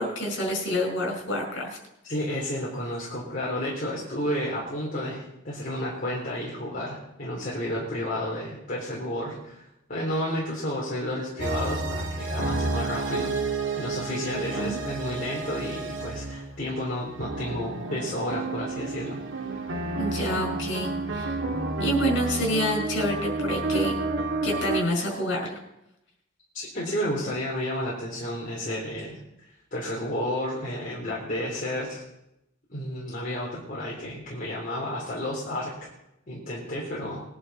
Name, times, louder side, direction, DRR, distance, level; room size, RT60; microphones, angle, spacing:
voice 1, 0.0-1.7 14.3-14.8 19.9-21.3 21.8-23.9 24.4-25.6, equal, 70° left, 1 dB, 5.2 m, -28 dB
voice 2, 2.0-19.4 26.5-29.2 29.7-32.0 32.7-35.9 36.3-37.2, left 1 dB, 45° left, -5 dB, 3.7 m, -31 dB
sound 1, 11.4-16.6 17.0-24.8, right 2 dB, 70° right, 1.7 m, -30 dB
21.0 x 11.0 x 4.2 m, 0.87 s
head